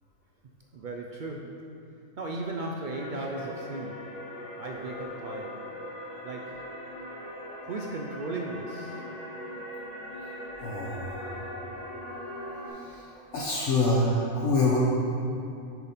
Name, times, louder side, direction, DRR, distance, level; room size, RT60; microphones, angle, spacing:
voice 1, 0.7-1.7 2.2-4.2 4.6-5.7 6.2-6.7 7.6-9.1, right 2 dB, 70° right, 0 dB, 0.4 m, -36 dB
sound 1, 2.9-12.7, left 1 dB, 30° left, 1.3 m, -40 dB
voice 2, 10.6-11.4 12.7-13.1 13.3-14.8, left 2 dB, 65° left, -5 dB, 1.1 m, -26 dB
6.8 x 4.1 x 5.7 m, 2.7 s
omnidirectional pair, 1.4 m